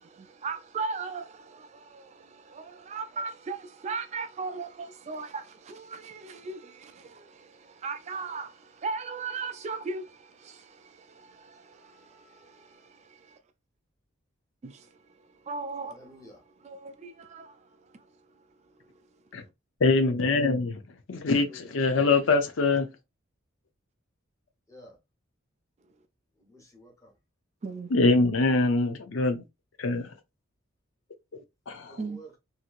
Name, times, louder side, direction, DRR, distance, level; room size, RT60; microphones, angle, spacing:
voice 1, 0.0-13.4 14.6-14.9 15.5-16.3 16.6-17.7 17.9-18.0 27.6-27.9 32.0-32.2, right 4 dB, 35° right, 0.3 m, -38 dB
voice 2, 11.7-12.9 15.9-16.4 21.4-21.7 24.7-25.0 26.4-27.1 31.8-32.4, equal, 15° left, 1.0 m, -52 dB
voice 3, 19.8-20.8 21.1-22.9 27.9-29.4 29.8-30.1 31.7-32.0, left 3 dB, 65° left, 0.6 m, -24 dB
3.0 x 2.8 x 2.5 m
head